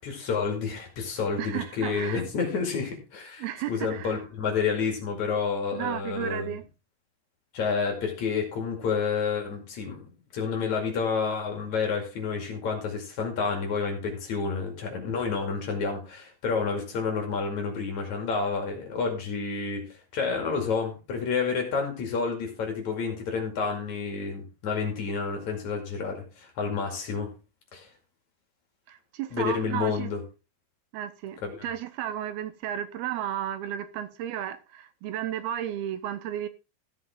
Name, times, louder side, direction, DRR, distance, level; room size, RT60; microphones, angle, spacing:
voice 1, 0.0-6.6 7.5-19.8 20.1-27.3 27.7-27.9 29.3-30.2 31.4-31.7, left 5 dB, 55° left, 3.3 m, -29 dB
voice 2, 1.4-2.2 3.4-4.2 5.7-6.6 28.9-30.1 30.9-36.5, right 11 dB, 80° right, 2.7 m, -33 dB
14.5 x 7.5 x 3.7 m
omnidirectional pair, 4.4 m